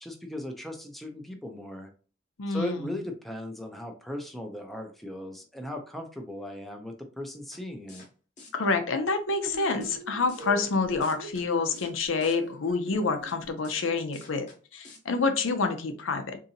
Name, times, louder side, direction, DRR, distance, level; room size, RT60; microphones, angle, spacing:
voice 1, 0.0-1.9 2.5-8.0, left 1 dB, ahead, 3 dB, 0.4 m, -37 dB
voice 2, 2.4-3.0 8.5-14.5 14.7-16.4, left 4 dB, 90° left, 7 dB, 0.6 m, -28 dB
sound 1, 7.5-7.6 7.9-8.1 8.4-8.5 9.4-9.5 9.8-10.0 10.3-10.7 11.0-11.4 11.7-11.9 12.2-12.4 13.3-13.4 13.6-13.8 14.1-14.6 14.8-15.0, left 3 dB, 40° left, 0.9 m, -49 dB
sound 2, 9.4-13.5, right 1 dB, 65° right, 0.6 m, -43 dB
3.8 x 2.7 x 2.7 m, 0.37 s
head